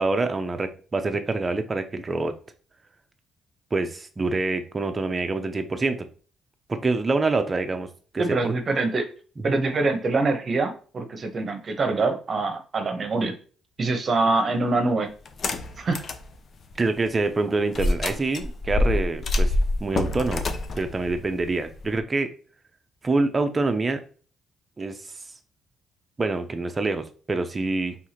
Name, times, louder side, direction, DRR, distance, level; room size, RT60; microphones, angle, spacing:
voice 1, 0.0-2.3 3.7-6.1 6.7-7.9 8.1-8.5 9.4-9.5 16.8-19.5 19.8-20.5 20.8-22.3 23.0-24.0 24.8-25.0 26.2-28.0, right 3 dB, 30° right, 7 dB, 0.7 m, -26 dB
voice 2, 8.2-9.1 9.4-13.3 13.8-15.1 15.8-16.0, right 3 dB, 45° right, 6 dB, 1.0 m, -24 dB
sound 1, 15.3-16.3 16.7-16.8 17.7-22.0, left 2 dB, 50° left, 0.6 m, -26 dB
4.6 x 3.6 x 2.9 m, 0.40 s
cardioid pair, 90°, 0 cm